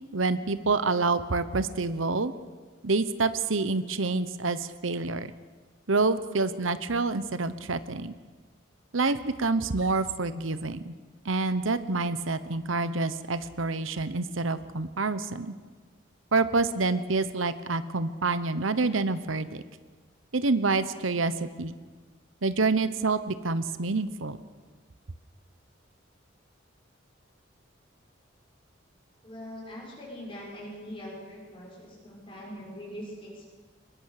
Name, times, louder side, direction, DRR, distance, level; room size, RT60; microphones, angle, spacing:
voice 1, 0.0-2.3 2.8-5.3 5.9-8.1 8.9-10.9 11.2-15.5 16.3-19.6 20.3-21.7 22.4-24.4, right 3 dB, 90° right, 13 dB, 1.1 m, -27 dB
voice 2, 29.2-33.5, equal, 25° left, -2 dB, 6.3 m, -42 dB
24.0 x 21.0 x 6.7 m, 1.4 s
head